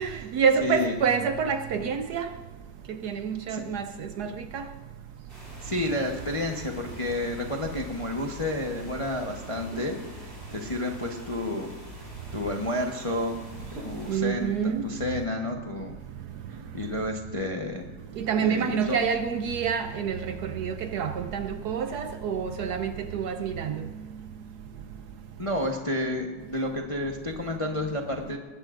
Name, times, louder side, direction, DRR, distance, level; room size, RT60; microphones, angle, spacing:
voice 1, 0.0-2.3 2.9-3.8 4.2-4.6 14.1-14.8 18.2-23.8, right 6 dB, 70° right, 1.0 m, -27 dB
voice 2, 0.6-0.9 3.5-3.6 5.6-11.7 12.3-13.4 13.8-14.5 14.8-16.0 16.5-17.9 18.4-19.0 25.4-28.4, left 1 dB, 30° left, 0.7 m, -30 dB
sound 1, 5.3-14.2, equal, 30° right, 4.6 m, -43 dB
19.5 x 16.0 x 2.5 m
omnidirectional pair, 2.1 m